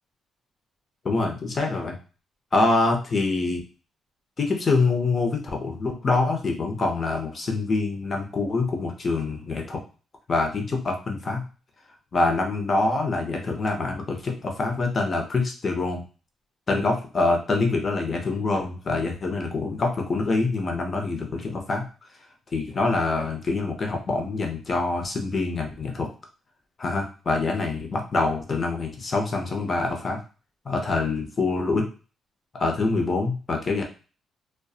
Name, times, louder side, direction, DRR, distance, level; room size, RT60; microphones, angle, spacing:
voice 1, 1.0-1.9 2.5-3.6 4.4-9.8 10.3-11.4 12.1-16.0 16.7-21.8 22.5-26.1 26.8-30.2 30.7-31.9 32.5-33.8, left 3 dB, 40° left, 3 dB, 0.7 m, -25 dB
2.6 x 2.2 x 2.3 m, 0.34 s
cardioid pair, 70°, 0 cm